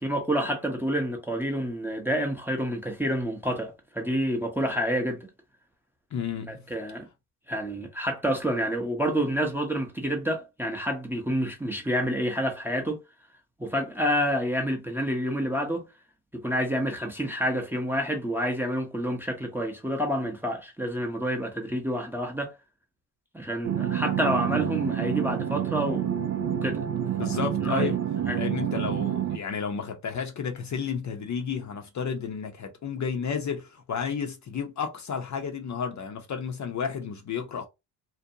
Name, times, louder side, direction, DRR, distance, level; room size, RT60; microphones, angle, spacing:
voice 1, 0.0-5.3 6.5-7.1 7.5-13.0 13.6-15.8 16.4-22.5 23.3-26.3 26.6-26.8 27.2-27.3 27.6-27.9 28.3-28.4, equal, 5° right, 0.6 m, -28 dB
voice 2, 6.1-6.7 27.2-28.0 28.3-37.7, left 6 dB, 40° left, 0.6 m, -32 dB
sound 1, 23.6-29.4, right 10 dB, 45° right, 0.5 m, -28 dB
2.6 x 2.1 x 2.7 m
supercardioid pair, 75°, 45 cm